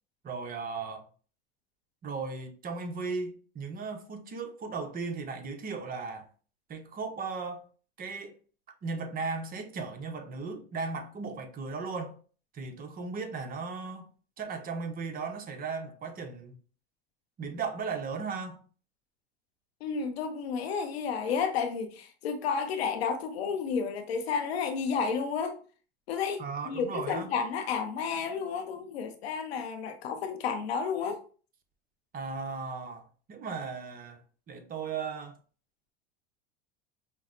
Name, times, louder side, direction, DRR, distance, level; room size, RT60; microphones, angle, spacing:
voice 1, 0.2-1.1 2.0-6.2 6.7-7.6 8.0-8.4 8.8-12.2 12.5-14.1 14.4-16.5 17.4-18.6 26.4-27.3 32.1-34.2 34.5-35.4, right 4 dB, 30° right, 0.7 m, -36 dB
voice 2, 19.8-25.6 26.1-31.2, left 6 dB, 90° left, 0.7 m, -31 dB
5.3 x 2.0 x 2.5 m
supercardioid pair, 105°, 30 cm